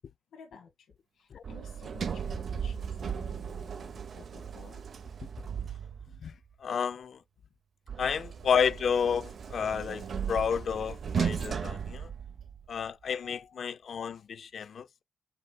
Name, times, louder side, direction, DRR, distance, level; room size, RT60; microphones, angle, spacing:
voice 1, 0.3-4.9 14.0-14.2, left 6 dB, 90° left, 1.2 m, -53 dB
Sliding door, 1.4-6.3 7.9-12.8, right 7 dB, 65° right, 0.6 m, -36 dB
voice 2, 6.6-7.2 8.0-12.1 12.7-15.0, left 7 dB, 65° left, 0.4 m, -31 dB
5.4 x 3.8 x 2.2 m
cardioid pair, 80°, 0 cm